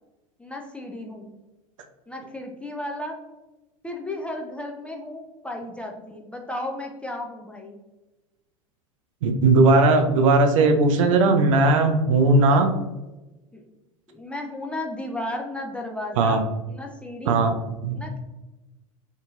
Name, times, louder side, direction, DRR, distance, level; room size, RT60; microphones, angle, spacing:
voice 1, 0.4-1.3 2.1-3.2 3.8-7.8 13.5-13.7 14.1-17.6 17.9-18.2, left 1 dB, 5° left, 2 dB, 0.3 m, -34 dB
voice 2, 9.2-12.7 16.2-16.4 17.3-17.5 17.8-18.0, right 3 dB, 65° right, 5 dB, 0.5 m, -18 dB
2.7 x 2.7 x 2.3 m, 1.1 s
figure-of-eight pair, 85°, 18 cm